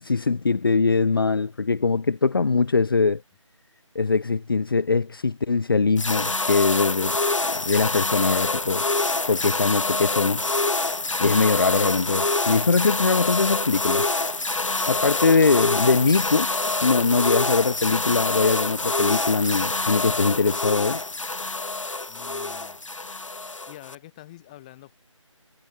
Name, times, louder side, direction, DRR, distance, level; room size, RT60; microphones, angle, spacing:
voice 1, 0.0-3.2 3.9-7.2 7.5-8.9 9.3-10.5 11.2-14.1 14.9-16.5 16.8-21.0, left 4 dB, 45° left, 0.9 m, -22 dB
sound 1, 6.0-24.0, left 3 dB, 70° left, 1.4 m, -26 dB
voice 2, 22.1-22.8 23.7-24.9, left 15 dB, 15° left, 2.0 m, -46 dB
figure-of-eight pair, 160°, 17 cm